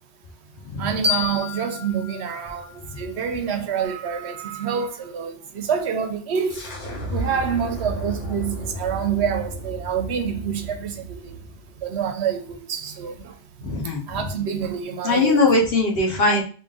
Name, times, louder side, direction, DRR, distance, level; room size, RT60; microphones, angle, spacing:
voice 1, 0.8-6.7 7.1-11.3 11.8-13.3 14.1-15.4, right 7 dB, 70° right, 0.8 m, -27 dB
sound 1, 1.0-3.8, left 6 dB, 15° right, 0.5 m, -30 dB
sound 2, 6.5-12.0, right 1 dB, 75° left, 1.4 m, -33 dB
voice 2, 13.6-14.2 15.0-16.4, left 2 dB, 55° left, 1.1 m, -20 dB
3.6 x 2.5 x 3.7 m
omnidirectional pair, 1.2 m